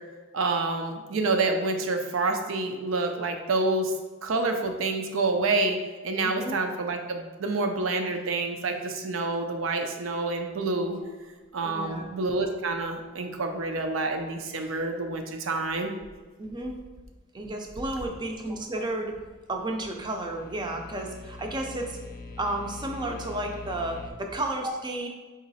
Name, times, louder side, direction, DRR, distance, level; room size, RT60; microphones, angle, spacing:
voice 1, 0.3-3.9 4.2-5.8 6.0-11.0 11.5-15.9, right 3 dB, 75° right, 5 dB, 0.5 m, -28 dB
voice 2, 6.2-6.6 11.6-12.1 16.4-16.8 17.3-19.1 19.5-22.0 22.4-25.1, right 1 dB, 20° right, 3 dB, 0.5 m, -32 dB
sound 1, 19.6-24.1, left 3 dB, 45° left, 0.6 m, -43 dB
3.9 x 3.0 x 4.0 m, 1.3 s
head